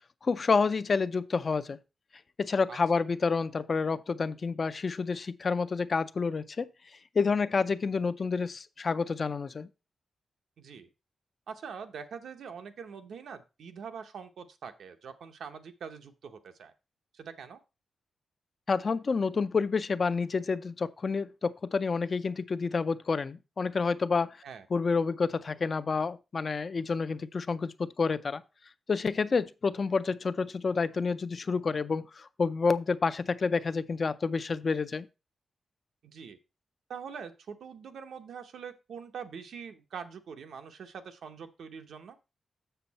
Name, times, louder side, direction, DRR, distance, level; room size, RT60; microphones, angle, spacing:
voice 1, 0.2-1.8 2.4-6.7 7.1-9.7 18.7-24.4 24.7-28.4 28.9-35.1, left 4 dB, 40° left, 0.4 m, -29 dB
voice 2, 10.6-10.9 11.5-16.7 17.1-17.6 24.4-24.7 36.0-36.4 36.9-42.2, right 6 dB, 85° right, 0.9 m, -44 dB
6.9 x 6.8 x 4.1 m
wide cardioid pair, 155°, 0 cm